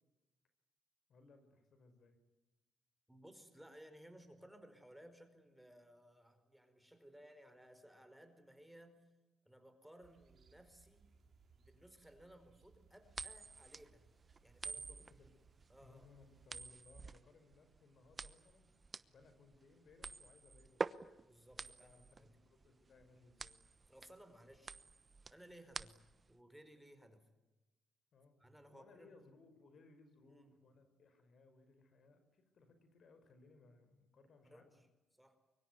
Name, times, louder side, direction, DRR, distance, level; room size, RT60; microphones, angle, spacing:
voice 1, 1.1-2.2 14.6-15.3 15.8-20.9 21.6-23.6 28.1-28.4 28.7-34.8, left 3 dB, 60° left, 8 dB, 5.4 m, -65 dB
voice 2, 3.1-9.1 9.4-11.1 11.6-14.1 14.4-15.0 15.7-16.1 21.2-22.3 23.9-24.7 25.3-26.0 26.3-27.3 28.4-29.2 30.3-30.5 34.4-34.9 35.2-35.4, equal, 5° right, 9 dB, 4.9 m, -60 dB
sound 1, 10.0-16.5, right 5 dB, 50° right, 4.0 m, -69 dB
sound 2, 13.1-26.3, right 4 dB, 30° right, 1.0 m, -47 dB
24.0 x 23.5 x 9.7 m, 1.1 s
cardioid pair, 90°, 0 cm